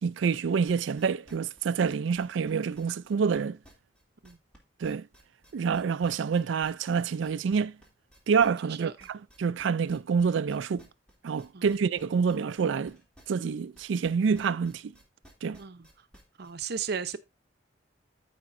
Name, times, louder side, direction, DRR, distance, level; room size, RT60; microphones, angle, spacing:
voice 1, 0.0-3.6 4.8-5.1 5.5-7.8 8.3-10.9 11.2-13.0 13.3-14.9 15.4-15.6, right 6 dB, 75° right, 0.4 m, -27 dB
sound 1, 0.7-4.6 4.8-14.1 14.3-16.5, equal, 5° left, 2.8 m, -56 dB
voice 2, 15.6-16.1 16.4-17.2, right 6 dB, 60° right, 0.8 m, -35 dB
14.5 x 5.1 x 2.6 m
head